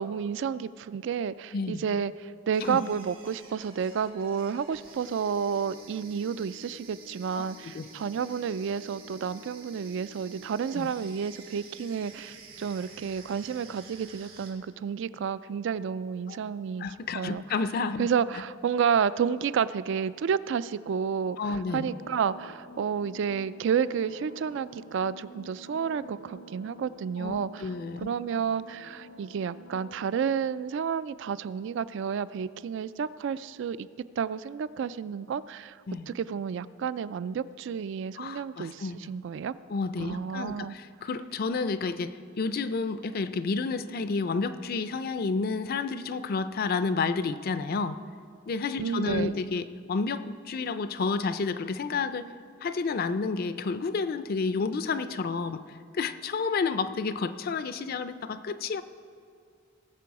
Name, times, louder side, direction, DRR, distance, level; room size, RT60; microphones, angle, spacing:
voice 1, 0.0-16.9 17.1-17.4 18.0-27.7 28.0-33.9 34.2-35.8 36.1-39.5 40.0-40.8 48.8-49.4, right 7 dB, 60° right, 16 dB, 0.3 m, -30 dB
voice 2, 1.5-1.8 2.6-2.8 7.3-7.4 7.7-7.9 10.7-10.9 16.3-16.4 16.8-18.1 21.4-21.9 27.2-28.1 35.9-36.1 38.2-39.1 39.7-48.0 48.5-52.3 52.6-55.6 55.9-58.8, left 4 dB, 45° left, 12 dB, 0.4 m, -30 dB
sound 1, 2.5-14.5, right 2 dB, 85° right, 2.4 m, -50 dB
sound 2, 21.8-30.2, equal, 80° left, 0.9 m, -48 dB
18.5 x 6.7 x 4.8 m, 2.4 s
head